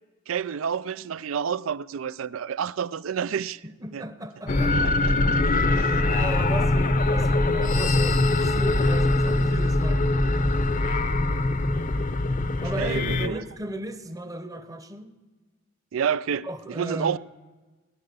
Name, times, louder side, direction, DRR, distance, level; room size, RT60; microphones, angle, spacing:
voice 1, 0.3-3.6 3.9-4.0 5.1-5.2 5.7-6.1 12.8-13.4 15.9-17.2, right 7 dB, 80° right, 0.4 m, -29 dB
voice 2, 3.6-5.2 5.4-5.6 6.1-10.4 12.6-15.1 16.4-17.2, right 1 dB, 15° right, 0.8 m, -36 dB
sound 1, 4.5-13.3, left 2 dB, 40° left, 0.7 m, -22 dB
19.0 x 10.5 x 6.8 m
head